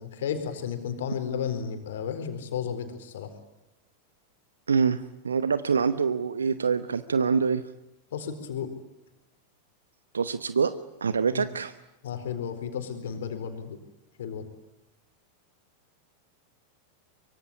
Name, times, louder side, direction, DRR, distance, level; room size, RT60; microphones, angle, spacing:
voice 1, 0.0-3.3 8.1-8.7 11.3-11.5 12.0-13.8 14.2-14.4, left 7 dB, 60° left, 8 dB, 4.3 m, -33 dB
voice 2, 4.7-7.6 10.1-10.7 11.0-11.7, right 5 dB, 70° right, 13 dB, 1.0 m, -25 dB
24.5 x 23.5 x 9.9 m, 0.90 s
figure-of-eight pair, 90°, 0 cm